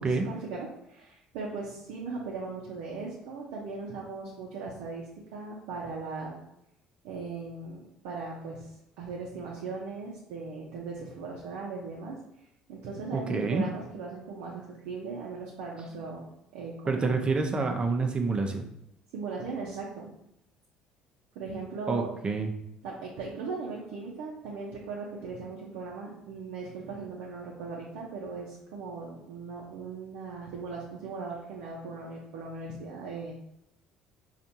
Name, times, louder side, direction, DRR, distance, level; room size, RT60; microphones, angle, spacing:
voice 1, 0.0-6.4 7.0-12.2 12.7-16.3 16.5-17.1 19.1-20.1 21.3-22.1 22.8-33.3, right 4 dB, 75° right, -3 dB, 0.6 m, -38 dB
voice 2, 13.1-13.7 16.9-18.7 21.9-22.5, right 4 dB, 30° right, 4 dB, 0.6 m, -28 dB
4.3 x 2.4 x 2.7 m, 0.82 s
hypercardioid pair, 65°, 3 cm